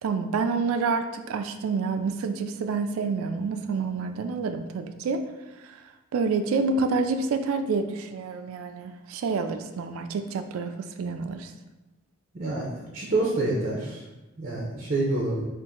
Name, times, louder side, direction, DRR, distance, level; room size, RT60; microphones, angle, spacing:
voice 1, 0.0-5.3 5.7-5.8 6.1-11.5, right 4 dB, 85° right, 8 dB, 0.3 m, -28 dB
voice 2, 12.3-14.0 14.4-15.4, right 2 dB, 40° right, -3 dB, 0.6 m, -27 dB
4.0 x 2.5 x 3.6 m, 1.1 s
head